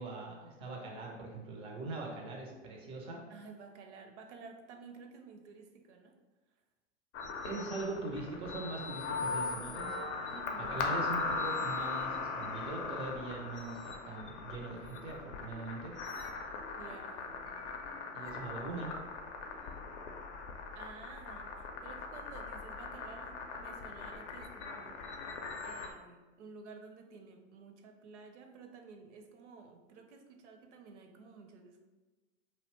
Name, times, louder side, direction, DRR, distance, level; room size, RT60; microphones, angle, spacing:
voice 1, 0.0-3.2 7.4-10.0 10.6-16.0 18.1-18.9, right 3 dB, 15° right, 0 dB, 0.3 m, -41 dB
voice 2, 3.3-6.2 10.3-10.8 16.8-17.3 20.7-25.0 25.6-31.8, right 4 dB, 65° right, 5 dB, 0.5 m, -52 dB
sound 1, 7.1-25.9, left 4 dB, 65° left, 0.5 m, -39 dB
2.6 x 2.0 x 3.0 m, 1.2 s
hypercardioid pair, 100°, 37 cm